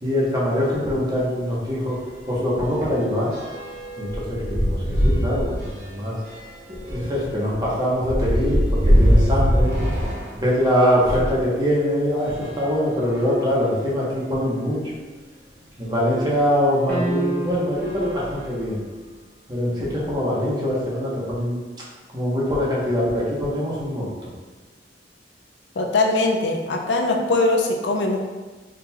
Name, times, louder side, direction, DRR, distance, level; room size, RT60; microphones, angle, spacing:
voice 1, 0.0-2.0 2.3-3.3 4.0-6.2 6.7-9.8 10.3-14.8 15.8-18.8 19.5-21.6 22.1-24.3, equal, 25° right, -6 dB, 0.9 m, -23 dB
sound 1, 1.1-1.2 1.5-1.7 1.9-11.4 12.1-13.5 14.2-14.3 14.5-14.6 16.3-16.4 17.0-17.3 17.7-19.0, equal, 60° right, 1.0 m, -24 dB
sound 2, 16.9-17.9, right 2 dB, 10° left, 0.7 m, -27 dB
voice 2, 25.8-28.2, left 2 dB, 70° left, 2 dB, 0.5 m, -21 dB
4.2 x 3.8 x 2.2 m, 1.3 s
head